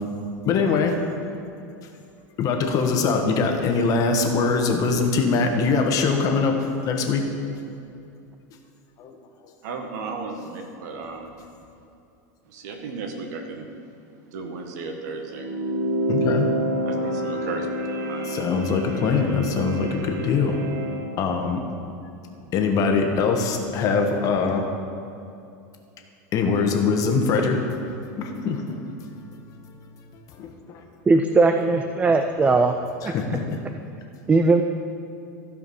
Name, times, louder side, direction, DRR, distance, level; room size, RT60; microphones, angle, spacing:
voice 1, 0.4-0.9 2.4-7.3 9.0-9.1 16.1-16.6 18.2-20.6 21.2-21.6 22.5-24.7 26.3-27.6 27.9-28.9 30.3-30.8 33.0-33.6, left 4 dB, 40° left, 3 dB, 1.3 m, -23 dB
voice 2, 9.6-11.3 12.5-13.7 14.3-15.5 16.8-17.7 18.1-18.3, right 4 dB, 70° right, 4 dB, 1.5 m, -34 dB
sound 1, 15.3-21.0, right 1 dB, 85° right, 1.7 m, -28 dB
voice 3, 31.1-32.8 33.0-33.1 34.3-34.6, right 3 dB, 15° right, 6 dB, 0.4 m, -18 dB
15.0 x 5.1 x 5.5 m, 2.6 s
supercardioid pair, 135°, 9 cm